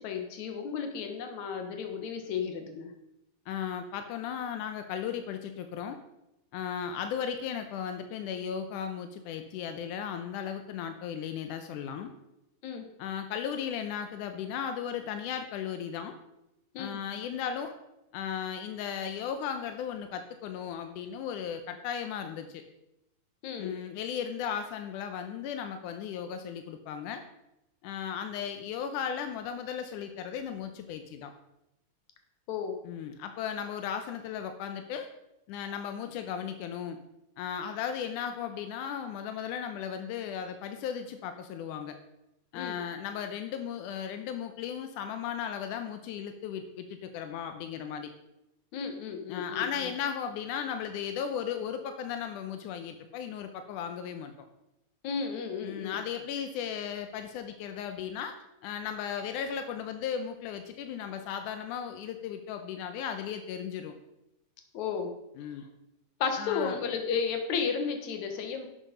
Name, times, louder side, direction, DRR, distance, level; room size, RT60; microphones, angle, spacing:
voice 1, 0.0-2.9 12.6-12.9 16.7-17.0 23.4-23.8 32.5-32.8 42.5-42.8 48.7-49.9 55.0-56.0 64.7-65.1 66.2-68.7, left 6 dB, 70° left, 5 dB, 2.6 m, -33 dB
voice 2, 3.5-6.0 6.5-12.1 13.0-16.2 16.8-17.8 18.1-22.6 23.6-27.2 27.8-31.3 32.8-35.1 35.5-37.0 37.4-42.0 42.5-48.1 49.3-54.3 55.6-58.4 58.6-63.9 65.4-65.7 66.4-66.8, left 8 dB, 90° left, 8 dB, 2.3 m, -36 dB
11.0 x 7.8 x 5.2 m, 0.88 s
omnidirectional pair, 3.6 m